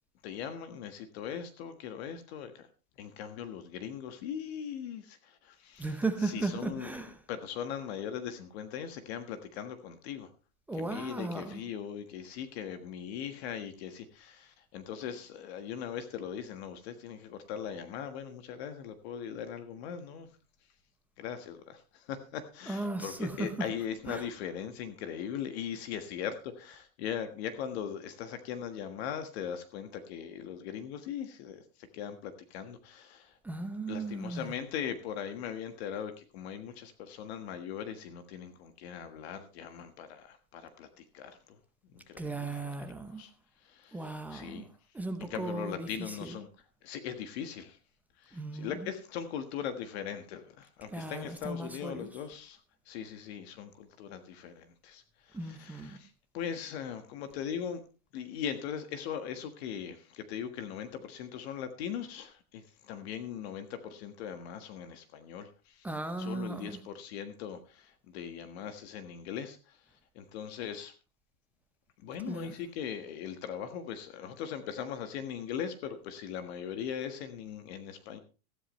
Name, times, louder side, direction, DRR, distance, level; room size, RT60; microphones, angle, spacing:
voice 1, 0.2-2.7 3.0-5.9 6.2-7.0 7.3-10.3 10.7-20.3 21.2-33.4 33.9-41.6 41.9-42.7 43.2-43.3 43.6-44.7 45.2-46.5 46.8-47.8 48.2-57.8 58.1-65.8 66.2-70.9 72.0-78.2, left 8 dB, 45° left, 1.5 m, -40 dB
voice 2, 5.8-7.2 10.7-11.6 22.7-23.5 24.1-24.3 33.4-34.6 42.2-43.2 43.9-44.7 44.9-46.4 48.3-48.9 50.9-52.1 55.3-56.0 65.8-66.8 72.3-72.5, right 3 dB, 5° right, 0.7 m, -36 dB
14.0 x 13.0 x 3.1 m
supercardioid pair, 150°, 43 cm